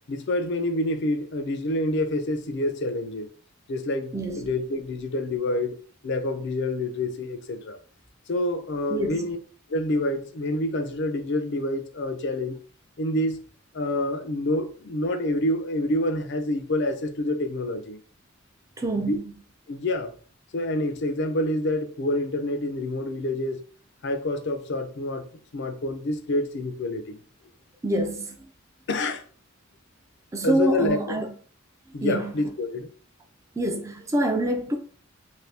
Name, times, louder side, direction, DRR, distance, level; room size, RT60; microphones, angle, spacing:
voice 1, 0.1-3.3 3.7-5.8 6.0-7.8 8.3-9.4 9.7-12.6 13.0-13.4 13.7-18.0 19.0-19.2 19.7-20.1 20.5-23.6 24.0-25.2 25.5-27.2 28.9-29.2 30.4-31.2 31.9-32.9, left 1 dB, 55° left, 0.5 m, -27 dB
voice 2, 4.1-4.5 8.9-9.3 18.8-19.2 27.8-28.4 30.3-31.3 32.0-32.3 33.6-34.8, right 1 dB, 15° right, 0.4 m, -26 dB
2.7 x 2.7 x 3.3 m
head